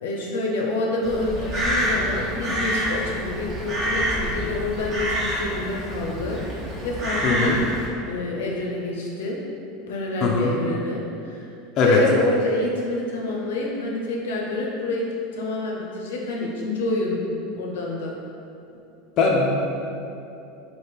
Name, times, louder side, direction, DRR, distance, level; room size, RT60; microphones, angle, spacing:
voice 1, 0.0-6.4 6.8-7.6 8.1-9.4 9.9-11.5 11.8-15.1 15.3-17.2 17.5-18.2, left 2 dB, 85° left, -2 dB, 0.7 m, -27 dB
Crow, 1.0-7.9, equal, 35° right, 1.1 m, -27 dB
voice 2, 7.2-7.6 10.2-10.5 11.8-12.0 19.2-19.6, left 4 dB, 45° left, -2 dB, 0.5 m, -20 dB
3.2 x 2.8 x 4.5 m, 2.7 s
supercardioid pair, 110°, 0 cm